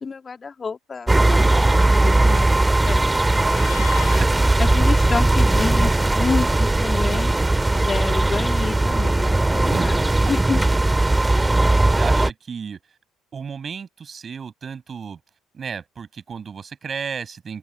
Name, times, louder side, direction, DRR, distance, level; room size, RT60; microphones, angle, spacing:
voice 1, 0.0-3.1 4.6-7.3 7.7-10.0 10.3-10.6, left 5 dB, 35° left, 1.9 m, -29 dB
sound 1, 1.1-12.3, right 2 dB, 15° right, 2.0 m, -18 dB
voice 2, 3.3-3.9 4.2-4.5 9.7-9.9 11.9-12.8 13.3-15.2 15.5-17.6, right 6 dB, 40° right, 7.9 m, -33 dB
Meow, 3.4-4.3, left 28 dB, 80° left, 2.6 m, -36 dB
hypercardioid pair, 55°, 0 cm